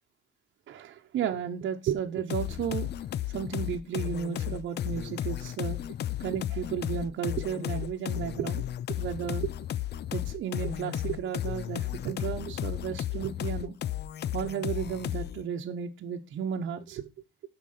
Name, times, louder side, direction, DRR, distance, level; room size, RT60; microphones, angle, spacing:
voice 1, 0.7-2.9 3.3-5.8 6.2-9.5 10.1-13.8 14.3-17.1, right 8 dB, 70° right, 2 dB, 1.0 m, -33 dB
sound 1, 2.3-15.4, left 12 dB, 55° left, 0.5 m, -34 dB
12.0 x 4.9 x 5.7 m, 0.27 s
cardioid pair, 90°, 20 cm